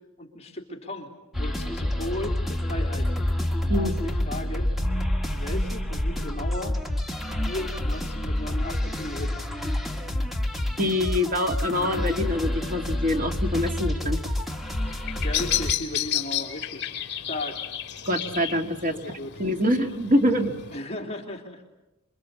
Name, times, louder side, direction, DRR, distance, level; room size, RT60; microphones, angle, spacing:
voice 1, 0.2-1.1 1.4-3.1 3.7-3.9 4.2-4.7 5.3-6.8 7.4-9.5 15.1-17.7 18.8-19.3 20.7-21.6, left 1 dB, 30° left, 1 dB, 3.2 m, -36 dB
sound 1, 1.3-15.7, left 1 dB, ahead, 1.7 m, -28 dB
voice 2, 10.8-14.2 18.1-20.5, left 1 dB, 40° right, 5 dB, 2.3 m, -25 dB
Bird vocalization bird call bird song, 14.8-20.8, left 11 dB, 50° left, 2.4 m, -32 dB
27.5 x 24.0 x 8.4 m, 0.96 s
head